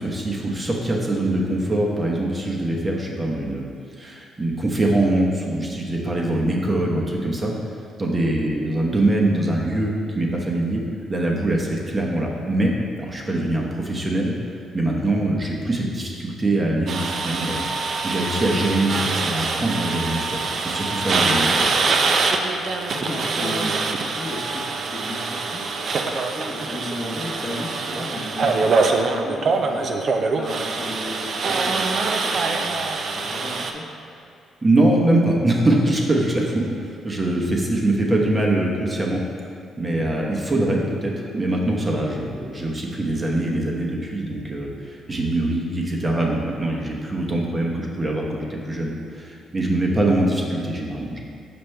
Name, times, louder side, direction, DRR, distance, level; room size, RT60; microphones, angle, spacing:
voice 1, 0.0-3.6 4.0-7.5 8.0-10.8 11.1-12.7 13.0-14.3 14.7-17.6 18.0-21.7 34.6-36.7 37.0-39.2 39.8-51.2, right 1 dB, 30° right, -1 dB, 1.0 m, -23 dB
sound 1, 16.9-33.7, right 4 dB, 55° right, 0.5 m, -24 dB
voice 2, 22.5-33.8 39.9-40.3 45.1-45.3, left 2 dB, 30° left, -8 dB, 1.0 m, -35 dB
6.1 x 5.1 x 3.3 m, 2.4 s
supercardioid pair, 70°, 0 cm